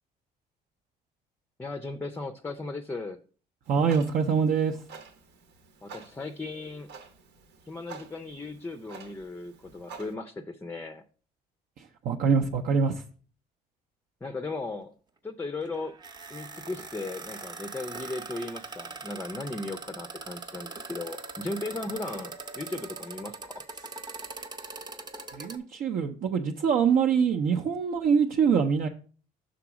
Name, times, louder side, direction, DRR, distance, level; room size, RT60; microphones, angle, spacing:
voice 1, 1.6-3.2 5.8-6.9 7.7-11.0 14.2-14.9 15.2-16.0 16.3-23.6, left 2 dB, 10° left, 0.5 m, -37 dB
Clock, 3.6-10.1, right 5 dB, 90° right, 1.1 m, -49 dB
voice 2, 3.7-4.8 11.8-13.0 25.3-28.9, right 6 dB, 60° right, 0.6 m, -24 dB
sound 1, 15.6-25.6, right 3 dB, 25° right, 0.7 m, -41 dB
6.0 x 3.8 x 6.0 m
cardioid pair, 110°, 17 cm